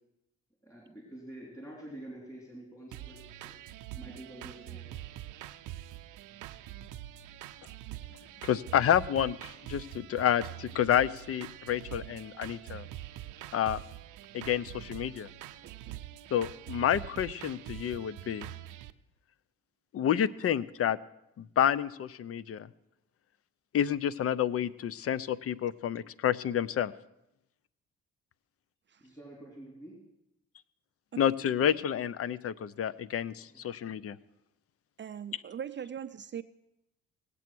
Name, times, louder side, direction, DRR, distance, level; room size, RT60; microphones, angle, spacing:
voice 1, 0.6-3.5 3.9-5.0 29.0-30.0 33.5-33.6, right 1 dB, 10° left, -3 dB, 3.8 m, -47 dB
sound 1, 2.9-18.9, right 13 dB, 90° right, 0.6 m, -44 dB
voice 2, 8.4-12.9 13.5-13.8 14.3-15.3 16.3-18.5 19.9-21.0 21.4-22.7 23.7-26.9 31.2-34.2, left 10 dB, 50° left, 19 dB, 0.6 m, -29 dB
voice 3, 15.6-16.0 28.9-29.1 31.1-31.2 35.0-36.4, right 8 dB, 40° right, 12 dB, 0.5 m, -41 dB
18.0 x 8.4 x 6.1 m, 0.87 s
cardioid pair, 90°, 30 cm